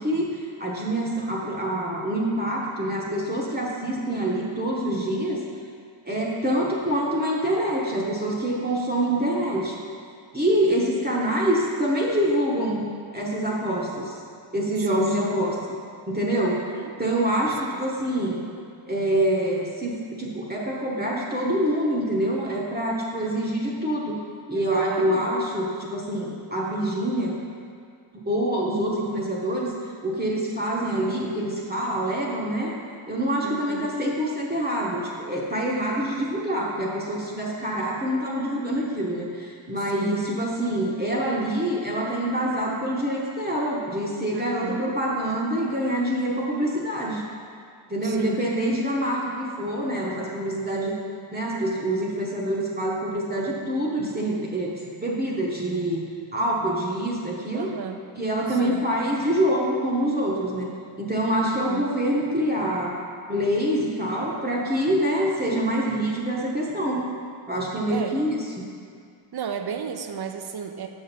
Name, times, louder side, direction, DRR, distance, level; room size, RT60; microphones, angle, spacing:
voice 1, 0.0-5.4 6.1-9.8 10.3-12.8 13.1-14.1 14.5-15.6 16.1-16.6 17.0-18.4 18.9-24.2 24.5-27.4 28.3-29.7 30.0-32.7 33.1-47.2 47.9-51.0 51.3-56.0 56.3-57.7 58.1-60.7 61.0-63.0 63.3-67.0 67.5-68.4, right 1 dB, 20° right, -5 dB, 0.9 m, -25 dB
voice 2, 10.5-11.0 14.9-15.0 16.5-16.9 17.7-17.8 24.5-25.3 33.4-34.0 39.9-40.3 44.3-45.0 48.0-48.4 51.5-52.0 57.5-58.0 58.5-58.8 61.4-61.8 67.9-68.2 69.3-70.9, right 6 dB, 50° right, 6 dB, 0.6 m, -35 dB
6.2 x 6.1 x 4.0 m, 2.2 s
wide cardioid pair, 90°, 50 cm